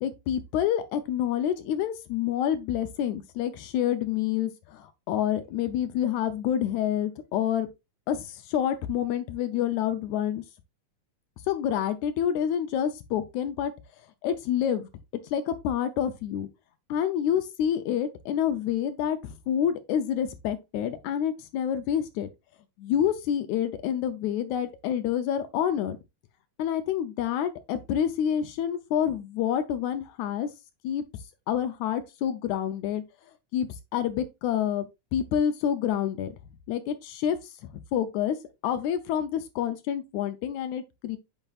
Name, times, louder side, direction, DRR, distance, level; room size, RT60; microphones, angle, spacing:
voice 1, 0.0-7.7 8.1-10.4 11.5-13.7 14.2-14.9 15.2-16.5 16.9-22.3 22.8-26.0 26.6-30.5 30.8-31.1 31.5-33.0 33.5-36.3 36.7-37.5 37.9-38.4 38.6-41.2, left 9 dB, 75° left, 1.9 m, -28 dB
8.8 x 5.5 x 2.4 m
omnidirectional pair, 3.6 m